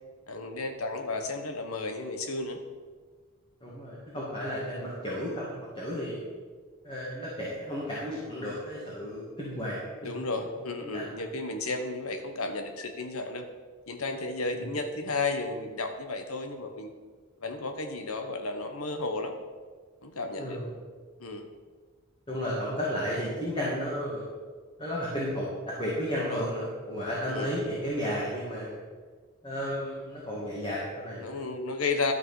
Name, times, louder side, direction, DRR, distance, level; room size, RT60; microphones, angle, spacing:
voice 1, 0.3-2.6 10.0-13.4 13.9-16.9 17.4-19.3 20.0-20.6 21.2-21.5 26.2-26.4 27.3-27.5 31.2-32.1, left 3 dB, 85° left, 6 dB, 1.2 m, -33 dB
voice 2, 3.6-6.2 6.8-10.1 10.5-11.2 14.5-14.7 20.4-20.8 22.3-24.2 24.8-28.8 29.4-31.4, equal, 25° left, -6 dB, 2.1 m, -33 dB
12.0 x 6.3 x 5.6 m, 1.5 s
head